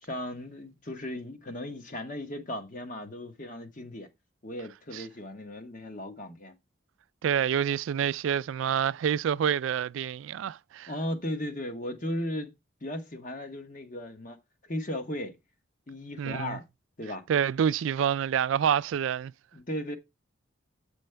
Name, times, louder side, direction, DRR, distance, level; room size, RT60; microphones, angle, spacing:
voice 1, 0.0-4.1 4.4-6.5 10.9-12.5 12.8-14.4 14.6-15.4 15.9-16.6 17.0-17.2 19.5-20.0, left 1 dB, 40° left, 1.1 m, -36 dB
voice 2, 7.2-10.9 16.2-16.6 17.3-19.3, right 8 dB, 75° right, 0.3 m, -27 dB
7.7 x 5.1 x 3.3 m
head